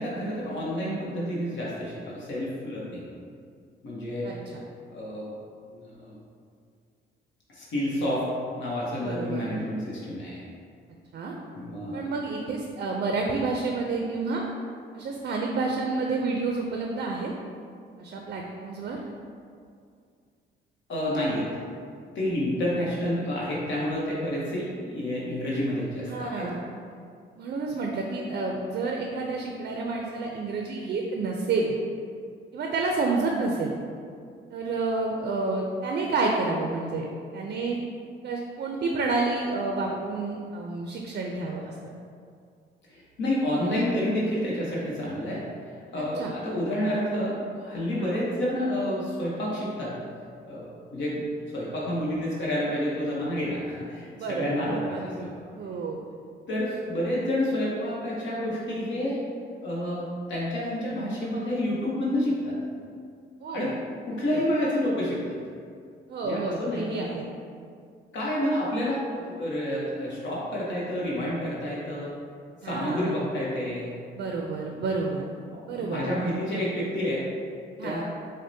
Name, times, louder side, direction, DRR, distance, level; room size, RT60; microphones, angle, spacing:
voice 1, 0.0-3.1 3.8-4.3 4.9-5.3 5.7-6.1 7.5-8.3 8.6-10.4 11.5-12.0 20.9-21.5 22.1-26.5 42.9-45.4 45.9-49.9 50.5-55.1 56.5-59.2 59.6-62.5 63.5-63.8 64.1-65.2 66.2-66.9 68.1-72.1 72.6-73.9 75.5-77.3 77.8-78.0, left 1 dB, 70° left, -6 dB, 0.9 m, -29 dB
voice 2, 4.2-4.6 9.0-9.5 11.1-11.3 11.9-14.4 14.9-17.3 18.0-19.0 26.1-26.6 27.4-31.8 32.5-33.7 34.5-37.1 37.3-37.8 38.2-41.7 45.9-46.3 48.0-48.2 54.2-55.3 55.5-56.0 63.4-63.8 64.3-64.4 66.1-67.3 72.6-73.2 74.1-75.2 75.7-76.1 77.8-78.0, right 3 dB, 55° right, 1 dB, 0.4 m, -29 dB
6.1 x 2.1 x 2.7 m, 2.2 s
cardioid pair, 90°, 20 cm